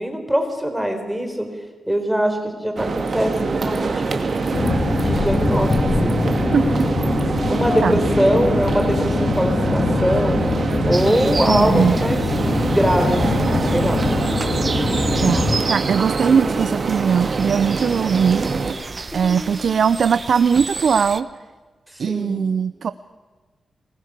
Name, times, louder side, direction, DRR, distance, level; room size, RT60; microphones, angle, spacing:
voice 1, 0.0-1.5 1.9-4.5 5.0-5.8 6.0-6.2 7.5-10.4 10.8-12.2 12.7-14.0 16.5-16.6 19.1-19.8 22.1-22.4, equal, 5° right, 5 dB, 4.1 m, -22 dB
sound 1, 2.8-18.7, right 4 dB, 55° right, 2.2 m, -24 dB
sound 2, 4.5-15.6, left 3 dB, 40° left, 1.9 m, -22 dB
sound 3, 10.9-21.2, right 4 dB, 35° right, 1.1 m, -32 dB
voice 2, 11.5-12.0 15.2-18.4 19.1-21.3 22.0-22.9, right 7 dB, 70° right, 13 dB, 0.6 m, -19 dB
24.5 x 20.5 x 6.9 m, 1.3 s
wide cardioid pair, 105°, 0 cm